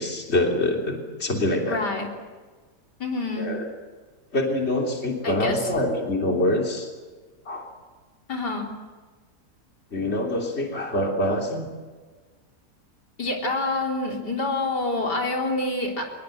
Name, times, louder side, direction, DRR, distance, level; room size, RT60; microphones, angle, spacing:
voice 1, 0.0-1.8 3.4-3.7 4.3-6.9 7.4-7.7 9.9-11.6, left 1 dB, 40° left, 1 dB, 3.5 m, -25 dB
voice 2, 1.7-2.1 3.0-3.5 5.2-5.7 8.3-8.7 13.2-16.1, left 2 dB, 80° left, 1 dB, 4.2 m, -27 dB
24.0 x 21.0 x 8.0 m, 1.4 s
omnidirectional pair, 1.8 m